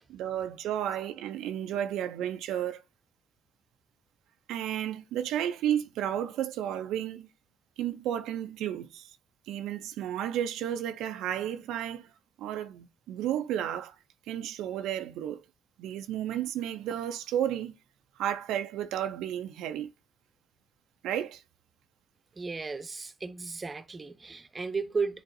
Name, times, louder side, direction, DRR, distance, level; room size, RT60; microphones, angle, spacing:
voice 1, 0.1-2.8 4.5-7.3 7.8-9.1 9.5-12.1 12.4-13.9 14.3-15.4 15.8-17.7 18.2-19.9 21.0-21.4, right 10 dB, 90° right, 0.4 m, -32 dB
voice 2, 22.4-25.2, right 4 dB, 30° right, 0.7 m, -34 dB
9.9 x 3.9 x 2.6 m
cardioid pair, 90°, 0 cm